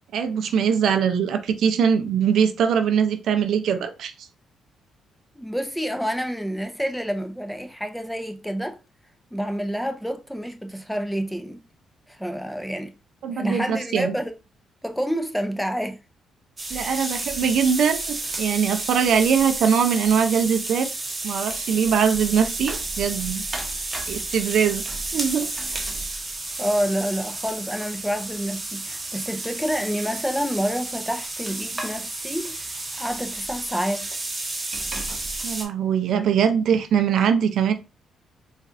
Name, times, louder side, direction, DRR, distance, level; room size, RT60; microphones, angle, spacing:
voice 1, 0.1-4.3 13.2-14.1 16.7-20.9 21.2-23.4 24.1-25.5 35.4-37.7, right 7 dB, 70° right, 0.5 m, -22 dB
voice 2, 5.4-8.8 9.3-11.6 12.1-12.9 13.3-14.3 14.8-16.0 16.7-17.0 26.6-34.2, equal, ahead, 0.6 m, -28 dB
sound 1, 16.6-35.6, right 2 dB, 25° right, 0.9 m, -31 dB
4.1 x 2.4 x 2.6 m
cardioid pair, 90°, 0 cm